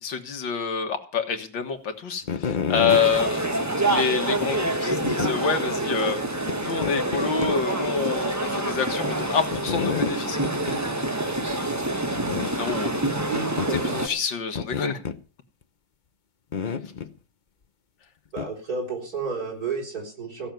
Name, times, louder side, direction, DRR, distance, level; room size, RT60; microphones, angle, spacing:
voice 1, 0.0-6.2 6.6-10.4 12.5-13.3 13.7-15.0, left 6 dB, 80° left, 6 dB, 2.3 m, -27 dB
sound 1, 2.2-3.0 4.0-4.1 5.0-5.3 6.5-6.6 6.8-7.6 7.8-7.9 9.5-10.2 10.4-10.8 11.1-11.2 11.5-11.6 12.1-12.5 13.6-13.9 14.5-15.2 16.5-17.1 18.4-18.5, left 6 dB, 50° left, 0.5 m, -29 dB
sound 2, 2.9-14.1, right 2 dB, 10° right, 0.9 m, -27 dB
voice 2, 13.3-14.0 18.3-20.5, right 4 dB, 50° right, 1 dB, 4.7 m, -31 dB
16.0 x 6.7 x 9.1 m, 0.38 s
omnidirectional pair, 2.0 m